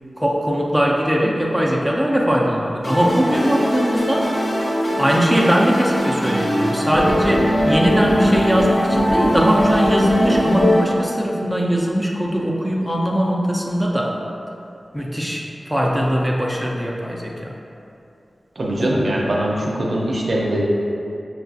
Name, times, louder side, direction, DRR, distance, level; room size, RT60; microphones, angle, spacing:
voice 1, 0.2-4.3 5.0-14.2 14.9-17.6 18.8-18.9, equal, ahead, -3 dB, 0.4 m, -20 dB
sound 1, 2.8-10.8, equal, 70° left, 1.0 m, -21 dB
voice 2, 18.6-20.7, right 1 dB, 60° right, -3 dB, 0.5 m, -21 dB
5.8 x 2.3 x 2.6 m, 2.6 s
wide cardioid pair, 90°, 0 cm